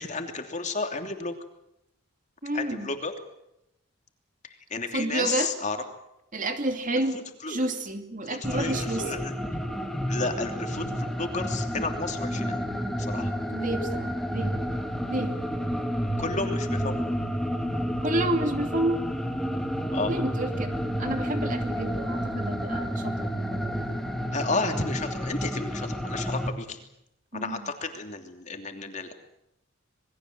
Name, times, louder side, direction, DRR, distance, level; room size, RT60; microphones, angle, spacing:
voice 1, 0.0-1.3 2.5-3.1 4.7-5.8 7.4-7.7 8.3-9.3 10.1-12.6 13.0-13.3 16.2-17.0 19.9-20.1 24.3-26.8 27.3-29.1, left 3 dB, 35° left, 5 dB, 3.0 m, -32 dB
voice 2, 2.4-2.9 4.9-5.5 6.3-7.2 7.5-9.1 13.5-14.5 15.1-15.4 18.0-19.0 20.1-23.7 27.3-27.7, right 1 dB, 35° right, 6 dB, 2.6 m, -30 dB
sound 1, 8.4-26.5, equal, ahead, 2.1 m, -30 dB
27.5 x 21.5 x 7.7 m, 0.84 s
head